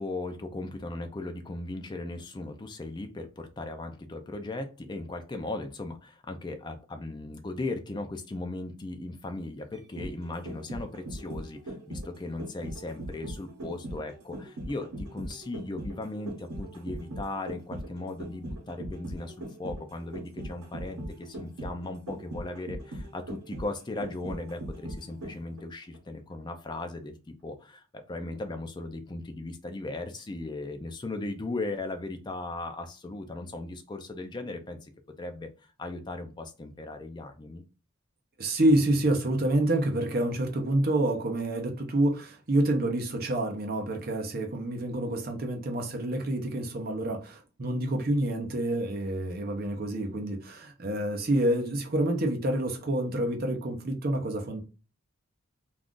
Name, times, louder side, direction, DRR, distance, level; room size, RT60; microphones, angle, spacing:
voice 1, 0.0-34.9 35.2-35.5 35.8-37.6, left 2 dB, 20° left, 0.3 m, -37 dB
sound 1, 9.7-25.6 25.9-26.0, right 1 dB, 85° right, 0.8 m, -40 dB
voice 2, 38.4-54.6, right 1 dB, 45° right, 0.6 m, -28 dB
2.5 x 2.3 x 3.6 m
head